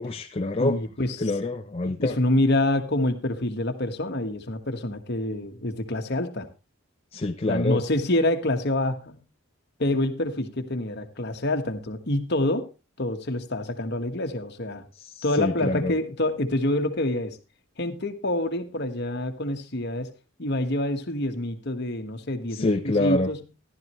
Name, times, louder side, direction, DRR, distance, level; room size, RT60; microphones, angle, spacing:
voice 1, 0.0-0.8 1.2-2.1 7.1-7.8 15.0-15.9 22.5-23.3, left 2 dB, 25° left, 4 dB, 0.5 m, -26 dB
voice 2, 0.5-1.3 1.8-6.5 7.5-9.2 9.8-12.7 13.0-14.8 15.2-17.4 17.8-20.1 20.4-23.4, left 1 dB, 50° left, 6 dB, 1.4 m, -27 dB
14.5 x 11.5 x 3.1 m, 0.28 s
head